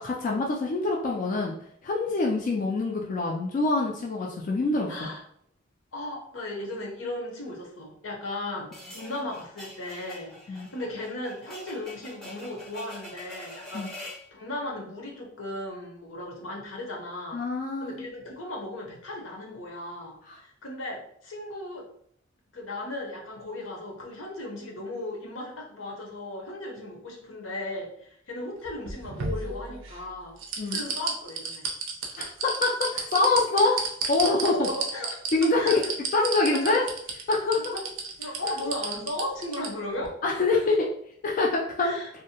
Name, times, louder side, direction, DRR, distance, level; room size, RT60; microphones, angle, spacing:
voice 1, 0.0-1.5 1.8-5.1 10.5-10.7 13.7-13.9 17.3-18.0 20.3-20.4 30.6-30.8 32.2-33.8 34.1-34.7 35.3-35.8 36.1-36.9 37.3-37.6 40.2-40.9 41.2-41.9, left 3 dB, 40° left, -1 dB, 0.3 m, -25 dB
voice 2, 4.9-5.2 5.9-13.9 14.3-17.4 17.8-21.8 22.5-30.4 30.7-31.7 34.4-35.2 35.6-35.9 36.5-36.8 37.6-37.8 38.2-40.1 40.5-40.6 41.8-42.1, left 1 dB, 85° left, 0 dB, 0.7 m, -36 dB
sound 1, 8.7-14.3, left 1 dB, ahead, 0.6 m, -45 dB
sound 2, 28.6-30.0 30.4-39.7 40.0-40.1, right 5 dB, 85° right, 0.5 m, -31 dB
2.6 x 2.0 x 2.8 m, 0.66 s
head